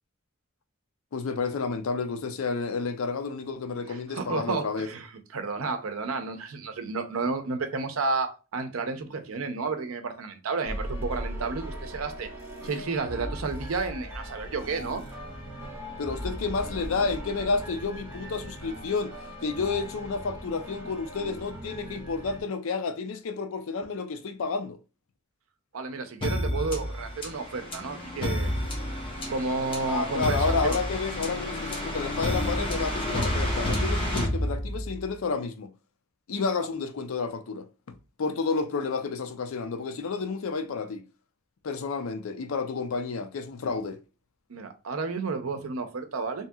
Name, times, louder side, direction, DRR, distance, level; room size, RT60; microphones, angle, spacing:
voice 1, 1.1-4.9 16.0-19.2 19.4-24.8 29.9-35.7 36.3-41.0 41.6-44.0, left 4 dB, 75° left, 0.5 m, -30 dB
voice 2, 3.9-12.3 12.6-15.0 25.7-28.5 29.3-30.8 44.5-46.5, right 4 dB, 85° right, 0.6 m, -31 dB
sound 1, 10.6-22.4, equal, 10° right, 0.8 m, -39 dB
sound 2, 26.2-35.0, left 1 dB, 25° left, 0.9 m, -30 dB
2.9 x 2.7 x 2.3 m
head